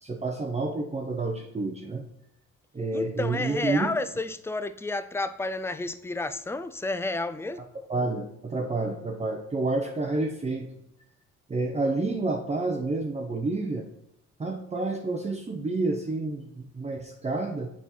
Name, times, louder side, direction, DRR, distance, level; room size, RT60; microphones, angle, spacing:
voice 1, 0.0-2.0 2.7-3.9 7.9-10.7 11.5-13.8 14.4-17.7, right 3 dB, 20° right, 2 dB, 0.7 m, -29 dB
voice 2, 2.9-7.6, left 2 dB, 10° left, 12 dB, 0.4 m, -31 dB
7.1 x 4.2 x 4.2 m, 0.81 s
cardioid pair, 90°, 30 cm